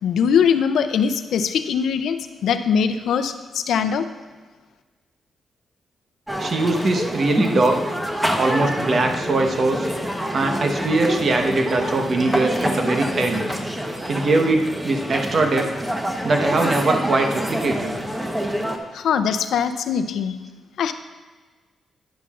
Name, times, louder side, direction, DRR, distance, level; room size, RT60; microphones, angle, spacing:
voice 1, 0.0-4.0 18.9-20.4 20.8-20.9, left 7 dB, 80° left, 10 dB, 0.5 m, -21 dB
sound 1, 6.3-18.8, equal, 10° right, 1.0 m, -26 dB
voice 2, 6.4-8.0 8.4-9.9 10.3-13.4 13.9-15.7 16.2-18.0, right 2 dB, 50° right, 4 dB, 1.1 m, -21 dB
10.5 x 9.8 x 2.5 m, 1.3 s
cardioid pair, 75°, 0 cm